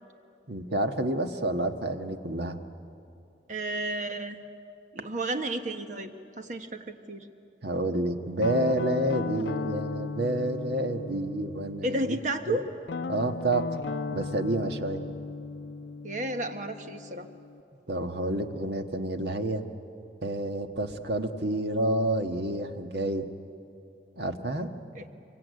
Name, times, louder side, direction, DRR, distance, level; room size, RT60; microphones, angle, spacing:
voice 1, 0.5-2.6 7.6-12.2 12.5-12.6 13.1-13.6 14.1-15.0 17.9-19.6 20.2-23.3 24.2-24.7, right 1 dB, 70° right, 6 dB, 1.5 m, -29 dB
voice 2, 3.5-4.4 4.9-7.3 11.8-12.7 16.0-17.3 24.9-25.0, right 1 dB, 45° right, 6 dB, 1.4 m, -32 dB
Guitar, 8.4-12.2 12.8-17.6, left 4 dB, 80° left, 0.5 m, -36 dB
25.5 x 23.5 x 9.4 m, 2.7 s
head